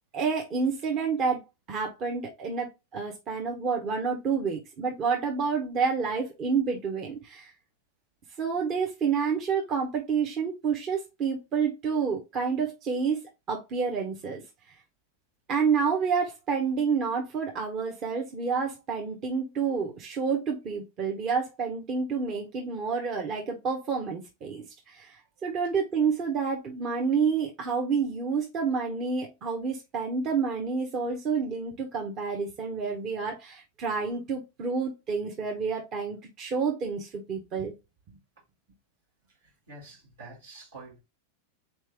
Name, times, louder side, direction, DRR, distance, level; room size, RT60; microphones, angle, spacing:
voice 1, 0.1-7.5 8.4-13.2 13.5-14.4 15.5-37.7, right 5 dB, 40° right, 1.1 m, -29 dB
voice 2, 39.4-41.0, right 3 dB, 75° right, 2.4 m, -47 dB
4.1 x 3.1 x 3.5 m
hypercardioid pair, 100°, 0 cm